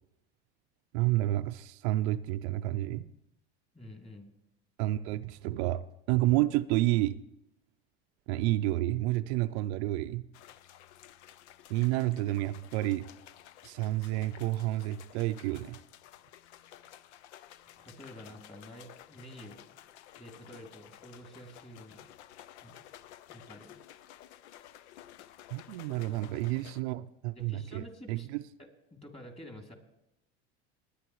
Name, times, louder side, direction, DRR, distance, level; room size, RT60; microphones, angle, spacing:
voice 1, 0.9-3.1 4.8-5.8 6.1-7.2 8.3-10.3 11.7-13.1 13.6-15.8 25.5-27.8 28.1-28.4, right 16 dB, 75° right, 11 dB, 0.5 m, -30 dB
voice 2, 3.7-4.3 17.8-22.0 22.6-22.7 23.3-23.7 27.4-28.3 28.6-29.7, left 1 dB, 20° left, 2 dB, 2.9 m, -49 dB
sound 1, 10.3-26.8, left 12 dB, 85° left, 0.6 m, -53 dB
20.0 x 9.9 x 3.1 m, 0.86 s
hypercardioid pair, 85°, 33 cm